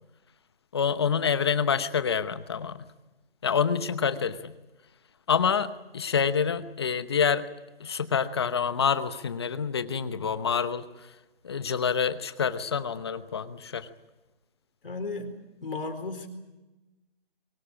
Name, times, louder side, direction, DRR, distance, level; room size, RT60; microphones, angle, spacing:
voice 1, 0.7-2.8 3.4-4.5 5.3-7.5 7.8-11.1 11.4-13.9, left 6 dB, 25° left, 13 dB, 0.9 m, -27 dB
voice 2, 14.8-15.3 15.6-16.3, left 3 dB, 65° left, 6 dB, 4.3 m, -34 dB
23.5 x 19.5 x 8.7 m, 1.1 s
hypercardioid pair, 170°, 30 cm